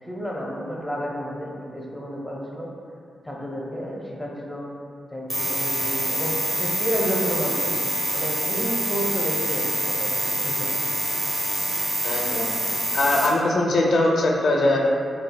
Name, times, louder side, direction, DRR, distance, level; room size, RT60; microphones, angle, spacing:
voice 1, 0.0-2.7 3.2-4.7 5.1-7.8 8.1-10.8, equal, ahead, -3 dB, 0.6 m, -31 dB
sound 1, 5.3-13.3, right 1 dB, 30° right, 0.9 m, -26 dB
voice 2, 12.0-12.6 12.9-14.8, left 2 dB, 70° left, -1 dB, 0.4 m, -21 dB
4.3 x 2.6 x 2.2 m, 2.3 s
cardioid pair, 90°, 0 cm